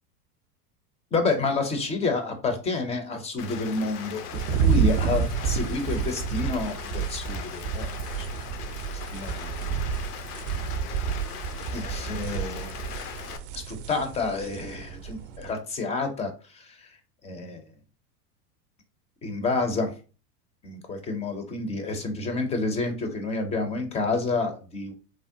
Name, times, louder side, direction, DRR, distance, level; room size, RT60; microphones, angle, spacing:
voice 1, 1.1-4.2 4.6-8.3 9.1-9.5 11.7-12.7 13.5-16.9 17.2-17.6 19.2-19.9 20.6-24.9, left 3 dB, 15° left, 6 dB, 0.4 m, -29 dB
Rain, 3.4-13.4, left 7 dB, 75° left, 0.6 m, -39 dB
sound 1, 4.3-15.5, right 7 dB, 50° right, 0.4 m, -30 dB
3.5 x 2.1 x 2.6 m, 0.34 s
hypercardioid pair, 100°, 47 cm